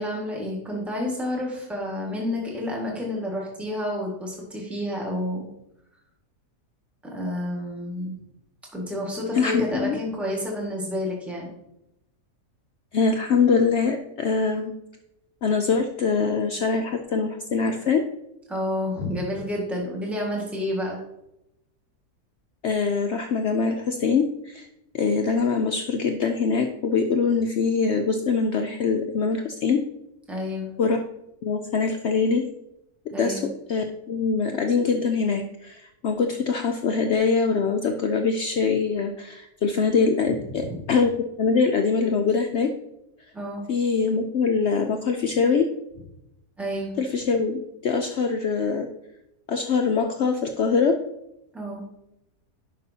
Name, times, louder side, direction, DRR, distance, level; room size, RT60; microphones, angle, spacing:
voice 1, 0.0-5.5 7.0-8.1 8.7-11.5 18.5-21.0 30.3-30.7 33.1-33.5 40.5-40.8 43.3-43.7 46.6-46.9 51.5-51.9, left 1 dB, ahead, -2 dB, 1.6 m, -30 dB
voice 2, 9.3-10.0 12.9-14.7 15.4-18.0 22.6-24.7 24.9-29.8 30.8-31.0 31.4-32.5 33.2-33.4 33.7-41.1 41.4-42.7 43.7-45.7 47.0-48.9 49.5-50.9, left 5 dB, 70° left, 4 dB, 0.6 m, -23 dB
11.0 x 5.3 x 2.8 m, 0.85 s
omnidirectional pair, 1.7 m